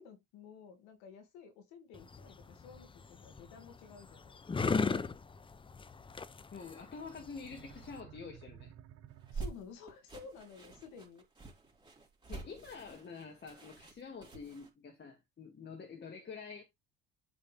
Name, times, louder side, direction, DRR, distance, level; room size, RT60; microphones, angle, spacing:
voice 1, 0.0-4.4 9.3-11.2, left 6 dB, 80° left, 2.4 m, -53 dB
sound 1, 1.9-8.0, left 4 dB, 15° left, 0.6 m, -37 dB
voice 2, 6.5-8.7 12.3-16.6, left 5 dB, 35° left, 2.0 m, -47 dB
sound 2, 7.2-10.0, right 10 dB, 60° right, 0.8 m, -55 dB
sound 3, 9.1-14.7, right 4 dB, 15° right, 3.3 m, -47 dB
8.1 x 4.1 x 3.5 m
supercardioid pair, 75°, 29 cm